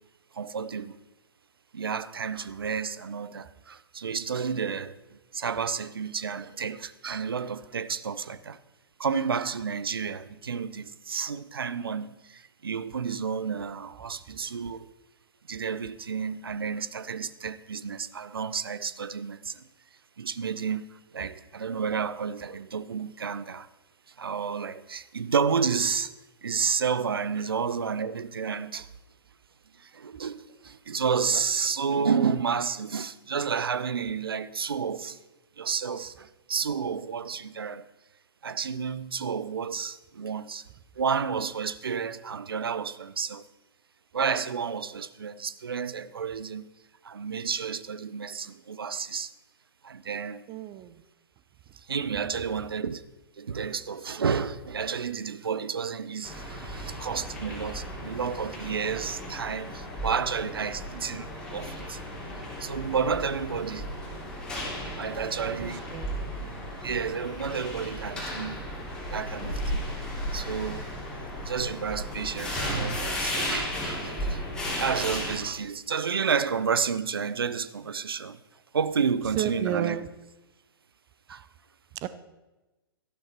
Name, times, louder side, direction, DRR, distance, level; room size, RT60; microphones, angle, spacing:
voice 1, 0.3-1.0 1.7-8.6 9.0-14.9 15.5-19.7 20.2-23.7 24.1-26.1 26.4-28.9 29.8-35.2 35.6-37.8 38.4-40.6 41.0-43.5 44.1-46.7 47.0-49.3 49.8-50.5 51.7-53.1 53.4-62.0 62.6-63.9 64.9-65.8 66.8-68.6 69.1-69.9 70.3-70.9 71.4-74.5 74.8-78.4 78.7-80.0 81.3-81.5, right 6 dB, 70° right, 0.7 m, -31 dB
voice 2, 50.5-51.0 51.7-51.8 65.1-66.2 79.3-80.1 82.0-82.1, right 11 dB, 25° right, 0.7 m, -33 dB
sound 1, 56.2-75.4, equal, 5° left, 3.1 m, -35 dB
12.5 x 12.0 x 4.3 m
figure-of-eight pair, 115°, 13 cm